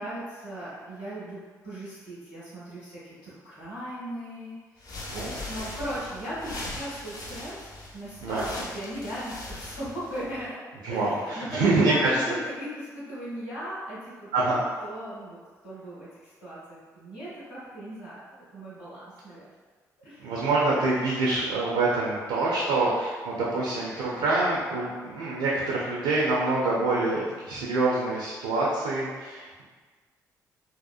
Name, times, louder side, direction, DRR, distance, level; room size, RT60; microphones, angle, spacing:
voice 1, 0.0-10.5 10.9-14.5 14.8-15.4 15.6-19.5 20.0-20.3, equal, 75° left, -11 dB, 1.0 m, -38 dB
sound 1, 4.8-10.5, left 2 dB, 40° left, 0.6 m, -40 dB
voice 2, 5.1-5.4 8.2-8.4 10.8-12.2 14.3-14.6 20.2-29.6, right 2 dB, 70° right, -5 dB, 0.4 m, -26 dB
2.8 x 2.0 x 2.3 m, 1.4 s
figure-of-eight pair, 40°, 9 cm